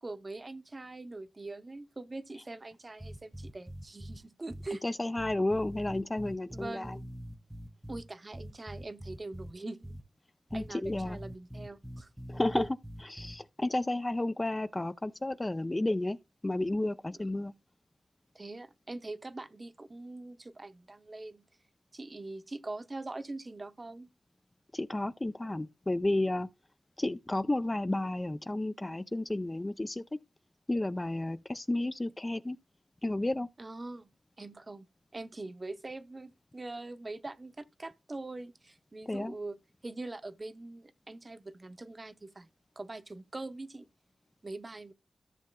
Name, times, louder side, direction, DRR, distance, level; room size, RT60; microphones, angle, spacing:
voice 1, 0.0-4.8 6.5-7.1 7.9-10.0 10.5-12.1 12.5-12.7 17.2-17.3 18.3-21.4 21.9-24.1 33.6-34.1 34.4-39.6 39.8-42.5 42.8-43.9 44.4-44.9, right 2 dB, 35° right, 0.7 m, -43 dB
sound 1, 3.0-4.2 4.5-4.7 5.2-8.0 8.3-9.5 9.8-10.0 10.5-13.4, equal, 5° right, 0.9 m, -43 dB
voice 2, 4.8-7.0 10.5-11.2 12.3-12.7 13.1-16.2 16.4-17.5 24.7-26.5 27.0-30.0 30.7-32.6 33.0-33.5 39.1-39.4, left 1 dB, 25° left, 0.4 m, -32 dB
13.5 x 6.6 x 2.2 m
wide cardioid pair, 75°, 0 cm